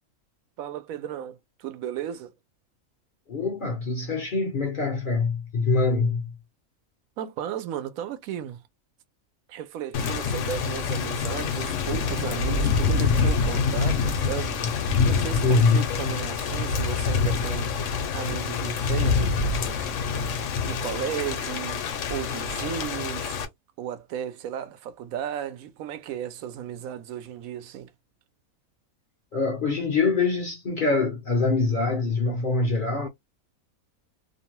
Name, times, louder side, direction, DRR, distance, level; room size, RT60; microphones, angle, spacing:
voice 1, 0.6-2.3 7.2-8.6 9.5-14.6 15.0-17.7 18.1-19.4 19.8-19.9 20.6-21.8 22.1-23.4 23.8-27.9, right 10 dB, 80° right, 1.0 m, -34 dB
voice 2, 3.3-6.3 15.4-15.8 29.3-33.1, left 3 dB, 50° left, 0.6 m, -24 dB
Thunder / Rain, 9.9-23.4, left 5 dB, 65° left, 0.9 m, -26 dB
2.7 x 2.2 x 2.9 m
omnidirectional pair, 1.5 m